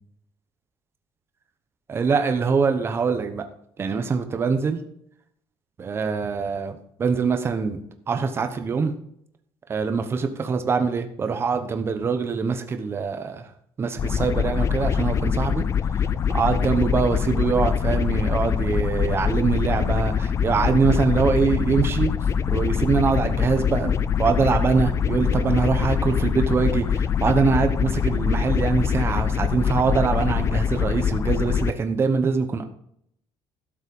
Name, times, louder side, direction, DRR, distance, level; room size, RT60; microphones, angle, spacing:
voice 1, 1.9-3.4 3.8-4.8 5.8-7.8 8.1-8.9 9.7-13.5 13.8-15.6 16.3-22.1 22.5-23.9 24.2-32.6, right 5 dB, 25° right, 7 dB, 1.0 m, -23 dB
sound 1, 14.0-31.7, left 7 dB, 30° left, 0.4 m, -24 dB
12.5 x 7.2 x 5.3 m, 0.70 s
cardioid pair, 175°, 10 cm